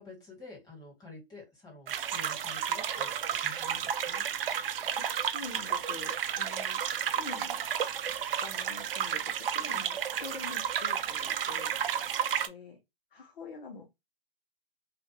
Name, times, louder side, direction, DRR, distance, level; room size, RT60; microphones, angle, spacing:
voice 1, 0.0-4.2, left 2 dB, 15° left, 2.0 m, -49 dB
sound 1, 1.9-12.5, right 8 dB, 65° right, 0.6 m, -32 dB
voice 2, 5.3-7.7 8.1-11.8 12.5-12.8 13.1-14.0, left 4 dB, 60° left, 1.1 m, -46 dB
3.0 x 2.5 x 2.9 m
hypercardioid pair, 130°, 30 cm